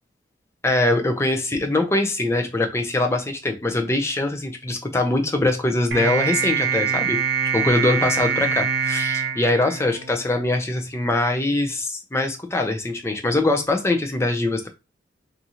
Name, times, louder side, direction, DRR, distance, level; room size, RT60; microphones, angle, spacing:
voice 1, 0.6-7.2 7.5-14.7, left 2 dB, 15° left, 0.4 m, -22 dB
sound 1, 5.9-10.4, right 6 dB, 70° right, 0.5 m, -24 dB
2.8 x 2.4 x 2.7 m
head